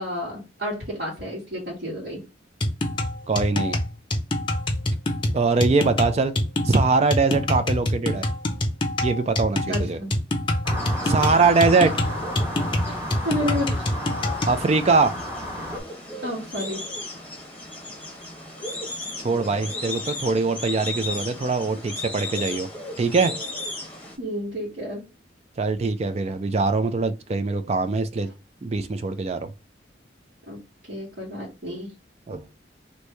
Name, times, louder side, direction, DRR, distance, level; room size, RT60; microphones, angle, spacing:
voice 1, 0.0-2.2 9.7-10.1 12.9-13.9 16.2-16.8 24.2-25.0 30.5-30.6 30.9-31.9, equal, 70° right, 1.7 m, -31 dB
sound 1, 2.6-14.6, left 1 dB, 30° left, 0.6 m, -25 dB
voice 2, 3.3-3.8 5.3-6.4 6.6-8.3 9.0-10.0 11.0-12.0 14.5-15.1 19.2-22.7 23.0-23.3 25.6-28.3 28.6-29.5 32.3-32.5, right 4 dB, 35° right, 0.4 m, -22 dB
sound 2, 10.6-15.8, equal, 15° right, 1.0 m, -32 dB
sound 3, 10.8-24.2, left 2 dB, 10° left, 0.9 m, -36 dB
3.1 x 2.6 x 3.2 m
head